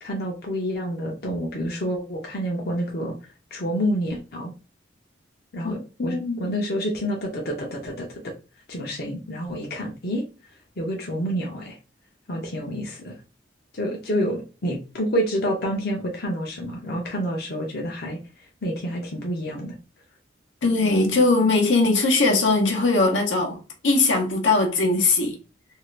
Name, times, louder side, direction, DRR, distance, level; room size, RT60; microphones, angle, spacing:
voice 1, 0.0-3.1 3.5-4.5 5.5-8.3 8.7-10.2 10.8-11.8 12.3-13.1 13.7-18.2 18.6-19.7, equal, 55° left, 0.7 m, -28 dB
voice 2, 6.0-6.5 20.6-23.6 23.8-25.3, left 3 dB, 85° left, 0.9 m, -20 dB
2.7 x 2.4 x 3.2 m
head